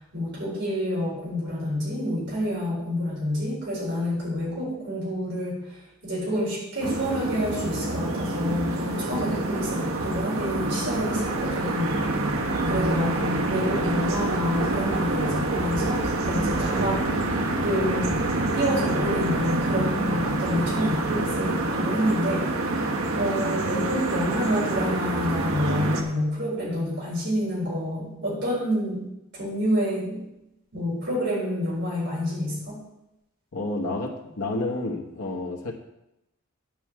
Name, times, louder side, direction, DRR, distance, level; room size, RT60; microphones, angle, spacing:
voice 1, 0.1-12.0 12.7-13.1 13.5-17.1 17.6-22.8 23.1-29.0 29.3-30.2 30.7-32.8, equal, 55° right, -6 dB, 4.3 m, -28 dB
sound 1, 6.8-26.0, right 2 dB, 75° right, 1.1 m, -26 dB
voice 2, 33.5-35.7, left 2 dB, 90° left, -1 dB, 1.2 m, -30 dB
9.2 x 4.7 x 7.5 m, 0.87 s
head